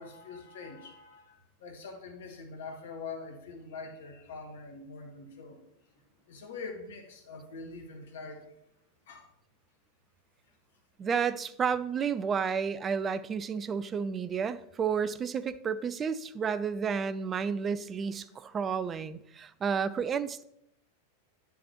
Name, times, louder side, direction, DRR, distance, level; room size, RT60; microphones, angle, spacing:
voice 1, 0.0-5.6 6.3-8.6 9.1-9.2, left 4 dB, 60° left, 3 dB, 1.5 m, -44 dB
voice 2, 11.0-20.4, right 6 dB, 20° right, 15 dB, 0.4 m, -31 dB
10.5 x 7.0 x 3.0 m, 0.79 s
figure-of-eight pair, 90°, 0 cm